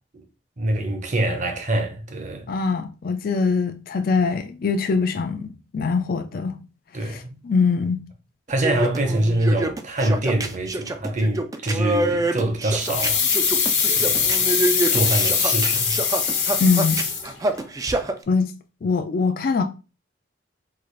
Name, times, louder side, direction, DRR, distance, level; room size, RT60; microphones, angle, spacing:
voice 1, 0.6-2.5 6.9-7.4 8.5-13.2 14.0-14.5 14.9-16.0, right 1 dB, 40° right, 0.7 m, -24 dB
voice 2, 2.5-6.6 7.0-8.0 16.6-17.0 18.3-18.5 18.8-19.6, left 4 dB, 50° left, 0.4 m, -23 dB
sound 1, 8.5-18.1, right 2 dB, 20° right, 0.3 m, -26 dB
sound 2, 12.8-17.6 17.9-18.0, left 6 dB, 70° left, 1.0 m, -22 dB
3.8 x 2.4 x 3.2 m
head